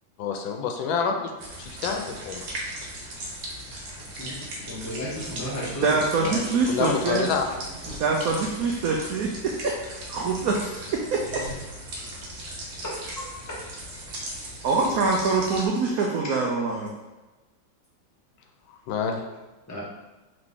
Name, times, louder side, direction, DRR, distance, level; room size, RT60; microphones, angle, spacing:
voice 1, 0.2-1.3 1.6-2.5 6.2-7.5 18.7-19.3, left 6 dB, 80° left, 4 dB, 1.3 m, -28 dB
sound 1, 1.4-15.7, right 1 dB, 60° right, 1.2 m, -38 dB
voice 2, 4.7-6.0 13.5-13.6 19.7-19.8, equal, 25° left, -6 dB, 0.4 m, -33 dB
voice 3, 5.8-7.3 8.0-11.5 14.6-16.9, right 4 dB, 85° right, -1 dB, 0.7 m, -25 dB
3.9 x 3.2 x 3.5 m, 1.1 s
omnidirectional pair, 2.1 m